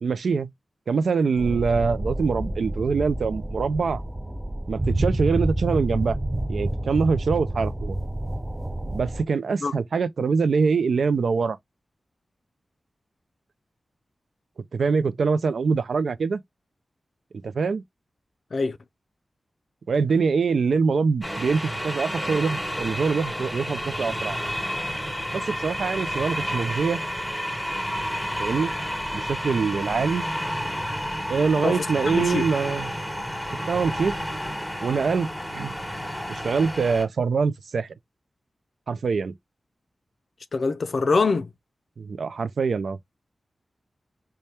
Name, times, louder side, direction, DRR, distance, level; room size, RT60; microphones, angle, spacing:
voice 1, 0.0-0.5 0.9-4.0 4.7-6.2 6.5-8.0 8.9-11.6 14.7-16.4 17.4-17.8 19.9-24.4 25.3-27.0 28.4-28.7 29.1-30.3 31.3-32.9 33.7-34.1 34.8-35.7 36.3-37.9 38.9-39.3 42.0-43.0, right 5 dB, 80° right, 0.4 m, -24 dB
sound 1, 1.4-9.2, right 1 dB, 15° right, 0.3 m, -28 dB
sound 2, 21.2-37.0, equal, 5° left, 1.2 m, -30 dB
voice 2, 31.6-32.5 40.5-41.5, left 4 dB, 60° left, 0.4 m, -24 dB
4.3 x 2.2 x 3.2 m
wide cardioid pair, 115°, 0 cm